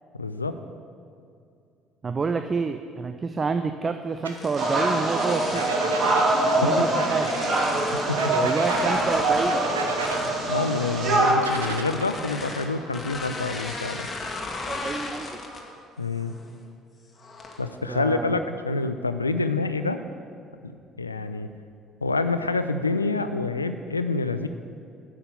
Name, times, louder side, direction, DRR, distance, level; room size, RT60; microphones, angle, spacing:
voice 1, 0.1-0.6 6.3-6.7 8.1-8.2 10.5-14.1 16.0-16.3 17.6-20.0 21.0-21.5 22.0-24.5, left 3 dB, 85° left, 10 dB, 0.3 m, -27 dB
voice 2, 2.0-5.6 6.6-7.3 8.3-9.6 14.7-15.4 17.9-18.4, right 4 dB, 30° right, 7 dB, 0.4 m, -28 dB
sound 1, 4.2-5.9 6.5-8.1 8.5-10.4 11.3-15.8 16.2-16.5 17.2-17.7, left 3 dB, 30° left, 1.4 m, -37 dB
sound 2, 4.2-4.4 5.5-6.3 7.0-7.4 8.2-8.9 9.5-10.2 11.3-12.1, right 4 dB, 80° right, 0.7 m, -32 dB
sound 3, 4.5-11.3, right 2 dB, 50° right, 1.6 m, -24 dB
9.5 x 5.8 x 6.9 m, 2.5 s
figure-of-eight pair, 55°, 0 cm